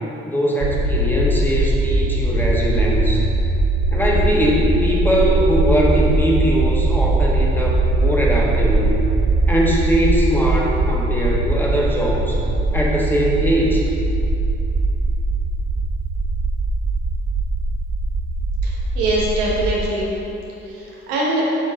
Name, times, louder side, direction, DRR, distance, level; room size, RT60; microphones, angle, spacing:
voice 1, 0.3-3.2 3.9-9.0 9.5-12.4 12.7-13.8, equal, 5° left, -4 dB, 1.5 m, -21 dB
sound 1, 0.6-19.9, right 2 dB, 45° right, 0.7 m, -20 dB
voice 2, 18.6-20.1 20.6-21.5, right 1 dB, 85° right, -5 dB, 1.2 m, -23 dB
7.5 x 4.7 x 3.5 m, 2.8 s
hypercardioid pair, 50°, 34 cm